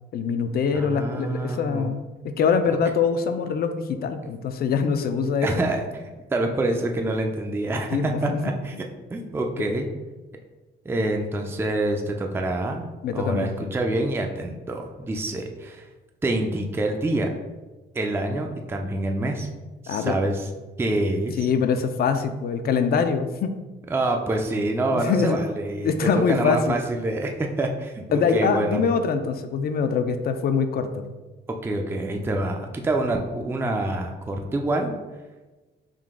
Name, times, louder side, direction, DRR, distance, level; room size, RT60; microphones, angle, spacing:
voice 1, 0.1-5.5 7.9-8.8 13.0-13.7 19.9-20.2 21.4-23.5 24.9-25.4 25.8-26.8 28.1-31.0, left 6 dB, 50° left, 8 dB, 0.4 m, -24 dB
voice 2, 0.7-1.9 5.4-6.0 6.3-8.1 8.4-8.7 9.1-9.9 10.9-12.9 13.1-15.9 16.2-17.3 17.9-19.5 19.8-20.5 20.8-21.4 23.9-28.9 31.6-35.0, right 2 dB, 10° right, 3 dB, 0.4 m, -26 dB
3.8 x 2.4 x 3.6 m, 1.2 s
cardioid pair, 90°, 20 cm